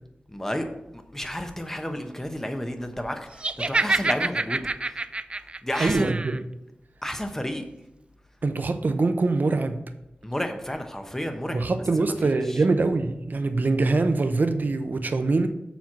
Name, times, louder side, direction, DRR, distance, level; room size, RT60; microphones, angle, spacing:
voice 1, 0.3-5.0 5.6-6.1 7.0-7.6 10.2-11.6 12.2-12.6, left 1 dB, 10° left, 5 dB, 0.9 m, -31 dB
Laughter, 3.4-6.4, right 2 dB, 35° right, 0.3 m, -27 dB
voice 2, 5.8-6.4 8.4-9.8 11.5-15.5, right 3 dB, 65° right, 8 dB, 0.7 m, -23 dB
7.2 x 4.4 x 6.1 m, 0.89 s
wide cardioid pair, 90°, 3 cm